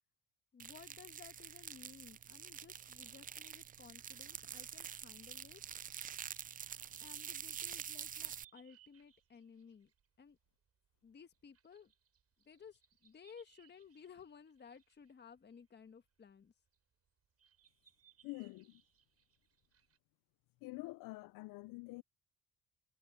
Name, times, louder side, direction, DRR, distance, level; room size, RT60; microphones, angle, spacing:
voice 1, 0.5-5.6 7.0-9.9 10.2-10.4 11.0-11.9 12.4-16.5, left 6 dB, 30° left, 1.5 m, -57 dB
sound 1, 0.6-8.4, right 8 dB, 25° right, 0.4 m, -47 dB
sound 2, 8.1-20.0, right 10 dB, 45° right, 6.0 m, -70 dB
voice 2, 18.2-18.8 20.6-22.0, left 22 dB, 65° left, 0.6 m, -47 dB
supercardioid pair, 80°, 35 cm